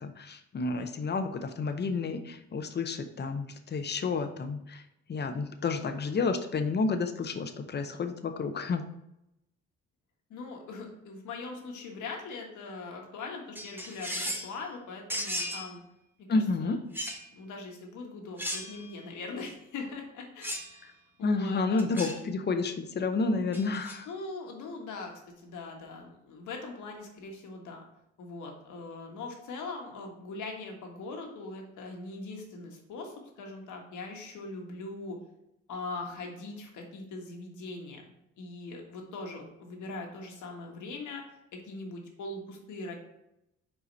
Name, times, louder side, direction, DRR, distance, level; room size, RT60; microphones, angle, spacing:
voice 1, 0.0-4.8 5.1-8.8 16.3-16.8 21.2-24.1, left 4 dB, 35° left, 8 dB, 0.7 m, -30 dB
voice 2, 10.3-15.8 16.3-16.8 17.3-20.9 21.2-22.1 24.1-27.8 28.2-35.2 35.7-38.0 38.4-41.2 41.5-42.9, left 3 dB, 75° left, 1 dB, 1.5 m, -41 dB
sound 1, 13.6-14.5 15.1-15.7 16.9-17.2 18.4-18.9 20.4-20.8 21.8-22.2 23.5-24.0, equal, 5° right, 1.1 m, -36 dB
5.0 x 4.9 x 4.0 m, 0.85 s
cardioid pair, 90°, 30 cm